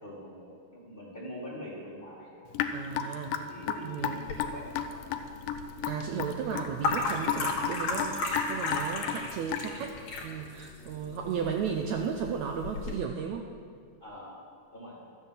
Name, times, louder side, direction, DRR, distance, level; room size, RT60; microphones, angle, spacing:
voice 1, 0.0-2.5 3.5-5.2 14.0-14.4 14.7-15.2, equal, 20° left, -5 dB, 1.8 m, -44 dB
Raindrop / Drip, 2.6-9.9, left 9 dB, 80° left, 2.3 m, -33 dB
voice 2, 2.7-4.3 5.8-13.5, right 6 dB, 85° right, 3 dB, 1.6 m, -34 dB
sound 1, 4.2-12.9, left 3 dB, 65° left, 3.3 m, -35 dB
13.0 x 8.8 x 7.4 m, 2.3 s
omnidirectional pair, 4.0 m